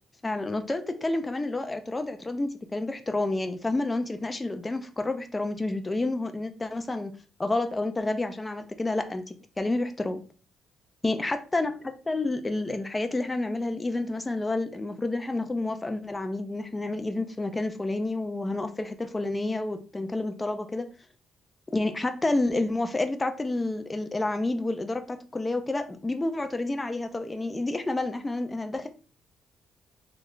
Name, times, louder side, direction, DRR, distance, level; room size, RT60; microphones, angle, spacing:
voice 1, 0.2-7.1 7.4-10.2 11.0-20.9 21.7-28.9, left 2 dB, 20° left, 7 dB, 0.4 m, -29 dB
3.1 x 2.2 x 3.7 m, 0.37 s
cardioid pair, 90°, 0 cm